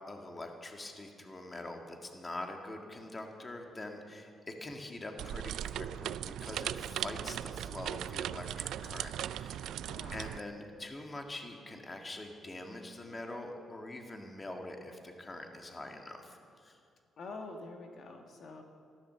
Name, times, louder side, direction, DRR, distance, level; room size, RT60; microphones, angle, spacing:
voice 1, 0.1-9.7 10.1-16.8, left 2 dB, 25° left, 3 dB, 1.9 m, -44 dB
sound 1, 5.2-10.4, right 11 dB, 80° right, 0.3 m, -38 dB
voice 2, 9.9-10.2 17.2-18.6, left 3 dB, 60° left, 3 dB, 1.6 m, -46 dB
14.0 x 12.5 x 6.9 m, 2.4 s
cardioid pair, 90°, 0 cm